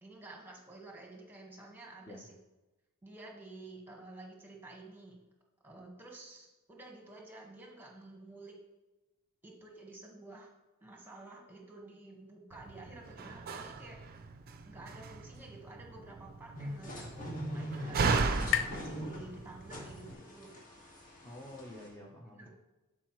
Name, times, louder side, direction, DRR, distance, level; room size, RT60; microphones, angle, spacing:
voice 1, 0.0-2.2 3.0-5.2 5.6-8.5 9.4-10.5 10.8-14.0 14.6-20.6 22.3-22.5, right 2 dB, 10° right, 0 dB, 1.4 m, -51 dB
Slam, 12.5-20.1, right 4 dB, 45° right, 0.5 m, -36 dB
sound 1, 16.2-19.9, left 10 dB, 55° left, 0.4 m, -40 dB
sound 2, 16.5-21.9, equal, 40° left, 1.8 m, -43 dB
voice 2, 21.2-22.5, left 1 dB, 15° left, -3 dB, 0.8 m, -48 dB
11.5 x 4.7 x 3.1 m, 1.1 s
head